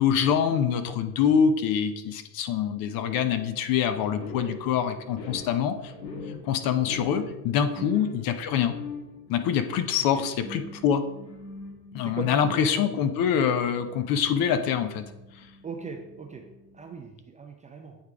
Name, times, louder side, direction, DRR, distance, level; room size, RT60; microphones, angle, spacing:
voice 1, 0.0-5.9 6.4-8.7 9.3-11.0 11.9-15.0, left 8 dB, 45° left, 10 dB, 0.7 m, -25 dB
sound 1, 4.2-17.1, left 3 dB, 80° left, 1.5 m, -43 dB
voice 2, 12.0-12.8 15.6-16.4 16.7-18.0, right 5 dB, 15° right, 3 dB, 0.4 m, -39 dB
8.7 x 3.5 x 3.5 m, 0.99 s
hypercardioid pair, 100°, 48 cm